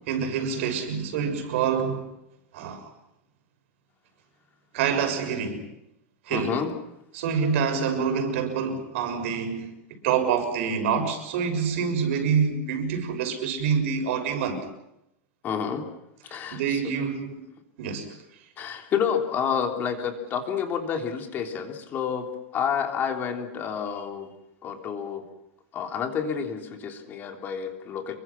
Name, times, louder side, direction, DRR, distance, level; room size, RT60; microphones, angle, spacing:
voice 1, 0.1-2.1 2.5-2.9 4.7-5.7 6.3-6.6 7.1-9.7 10.0-14.7 16.3-17.4 17.8-18.2, right 6 dB, 70° right, 6.6 m, -26 dB
voice 2, 6.3-6.7 15.4-15.8 16.3-16.8 18.6-24.3 24.6-25.2 25.7-28.2, left 7 dB, 25° left, 3.4 m, -29 dB
28.5 x 23.5 x 6.1 m
supercardioid pair, 160°, 7 cm